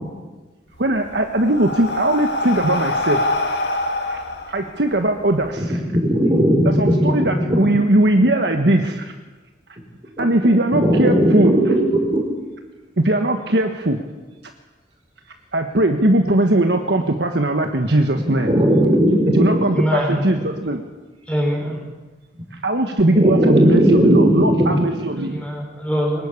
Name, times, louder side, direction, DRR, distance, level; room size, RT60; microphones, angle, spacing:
Breathing, 0.7-5.5, left 2 dB, 65° left, 2.4 m, -25 dB
voice 1, 0.8-3.3 4.1-4.2 4.5-5.8 6.6-9.1 10.2-11.7 13.0-14.0 15.5-18.5 19.4-20.8 22.6-25.4, right 1 dB, 70° right, 5 dB, 1.4 m, -19 dB
voice 2, 5.6-7.6 10.2-10.3 10.7-12.2 18.1-19.6 23.1-24.7, equal, 30° right, 1 dB, 4.3 m, -17 dB
voice 3, 19.7-20.3 21.3-21.8 25.2-26.3, equal, 5° left, -1 dB, 5.4 m, -23 dB
22.5 x 19.0 x 8.4 m, 1.2 s
head